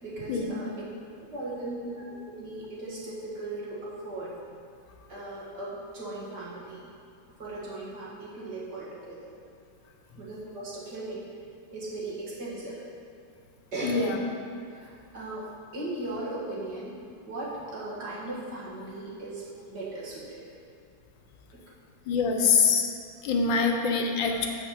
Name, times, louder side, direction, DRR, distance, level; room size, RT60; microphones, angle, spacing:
voice 1, 0.0-0.7 1.3-4.4 5.1-6.9 7.4-9.3 10.2-11.3 11.7-12.8 13.7-14.3 14.7-15.5 15.7-17.0 17.3-20.4, right 2 dB, 55° right, -7 dB, 2.3 m, -37 dB
voice 2, 13.8-14.2 22.1-22.9 23.2-24.5, left 5 dB, 75° left, 3 dB, 1.5 m, -24 dB
6.4 x 5.9 x 7.0 m, 2.5 s
omnidirectional pair, 2.1 m